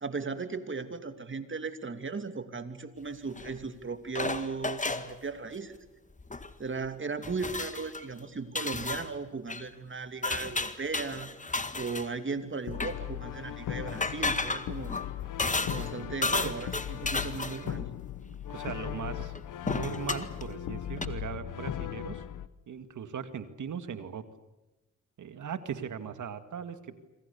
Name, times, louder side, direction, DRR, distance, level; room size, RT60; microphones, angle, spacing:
voice 1, 0.0-5.8 6.6-11.3 11.7-15.0 15.6-17.9, right 4 dB, 40° right, 9 dB, 2.8 m, -37 dB
sound 1, 3.4-3.6 4.1-5.1 6.2-6.5 6.8-6.9 7.2-8.0 8.5-9.1 9.5-9.7 10.2-12.1 12.7-13.0 13.9-15.9 16.2-17.7 19.3-19.4 19.7-20.5 21.0-21.1, left 3 dB, 25° left, 1.8 m, -33 dB
Brass instrument, 12.7-22.5, left 11 dB, 85° left, 1.1 m, -38 dB
voice 2, 16.0-16.5 17.8-17.9 18.5-19.3 19.6-22.2 22.7-24.2 25.2-27.0, right 7 dB, 75° right, 10 dB, 2.2 m, -39 dB
27.5 x 25.0 x 7.1 m, 1.1 s
cardioid pair, 65°, 31 cm